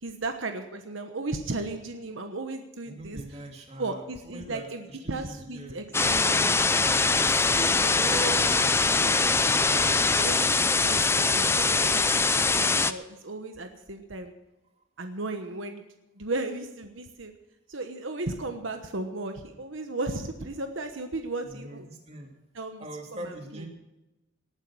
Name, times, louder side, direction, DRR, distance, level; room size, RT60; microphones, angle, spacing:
voice 1, 0.0-3.4 3.8-6.6 7.4-9.2 9.7-14.3 15.0-15.8 16.1-17.3 17.7-21.9 22.5-22.9 23.2-23.7, right 2 dB, 75° right, 6 dB, 1.2 m, -36 dB
voice 2, 2.9-6.0 7.2-8.6 21.5-22.3 22.8-23.7, right 1 dB, 30° right, 1 dB, 2.7 m, -41 dB
sound 1, 5.9-12.9, left 4 dB, 10° left, 0.5 m, -23 dB
19.0 x 9.3 x 6.2 m, 1.0 s
head